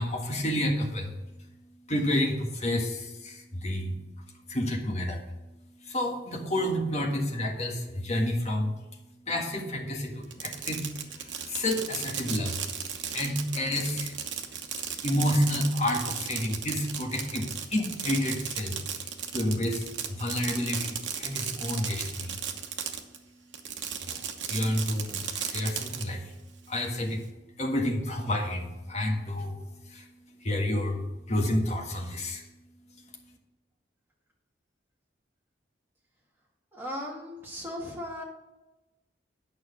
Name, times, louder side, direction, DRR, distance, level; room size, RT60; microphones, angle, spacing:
voice 1, 0.0-5.3 5.7-14.5 14.9-22.4 23.8-32.5 32.9-33.0, left 1 dB, 35° left, 1 dB, 1.6 m, -30 dB
Fireworks, 10.2-23.2 23.5-26.0, right 8 dB, 75° right, 1.0 m, -35 dB
voice 2, 36.7-38.2, left 1 dB, 10° right, -3 dB, 2.0 m, -37 dB
8.9 x 6.2 x 6.0 m, 1.0 s
head